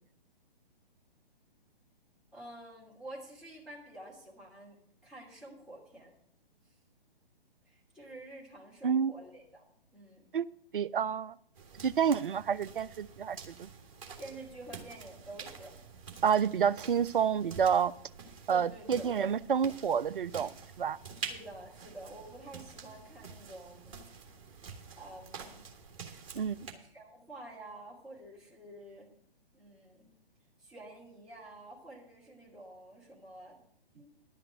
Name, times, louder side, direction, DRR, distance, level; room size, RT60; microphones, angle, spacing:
voice 1, 2.3-6.1 7.7-9.6 9.9-10.3 14.2-15.8 18.5-19.1 21.1-24.0 25.0-25.6 26.8-29.1 29.5-30.1 30.6-33.6 33.9-34.1, right 1 dB, ahead, -7 dB, 2.6 m, -49 dB
voice 2, 10.7-11.3 11.8-13.7 16.2-17.9 18.5-20.5 20.8-21.0 26.3-26.6, right 7 dB, 60° right, 16 dB, 0.5 m, -29 dB
sound 1, 11.5-26.7, right 5 dB, 35° right, 1.8 m, -48 dB
11.0 x 5.8 x 8.8 m, 0.66 s
figure-of-eight pair, 125°, 29 cm